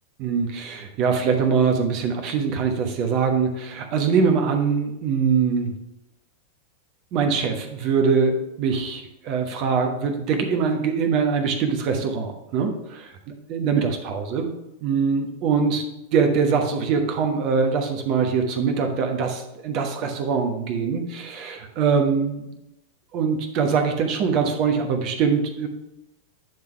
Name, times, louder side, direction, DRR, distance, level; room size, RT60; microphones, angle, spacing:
voice 1, 0.2-5.8 7.1-13.1 13.5-14.5 14.8-15.8 16.1-22.5 23.1-25.7, right 5 dB, 40° right, 4 dB, 1.1 m, -23 dB
9.4 x 3.6 x 4.5 m, 0.90 s
figure-of-eight pair, 90°, 0 cm